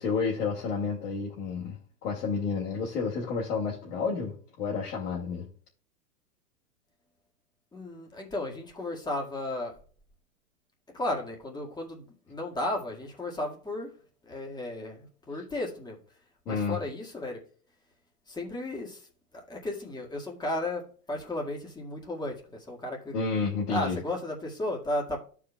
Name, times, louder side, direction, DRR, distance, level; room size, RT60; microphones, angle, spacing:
voice 1, 0.0-5.5 16.5-16.8 23.1-24.0, left 5 dB, 70° left, 2.2 m, -30 dB
voice 2, 7.7-9.8 10.9-13.9 14.2-16.0 16.5-17.4 18.3-19.1 19.3-23.2 23.7-25.2, left 1 dB, 10° left, 1.8 m, -34 dB
14.0 x 4.8 x 2.3 m
hypercardioid pair, 115°, 48 cm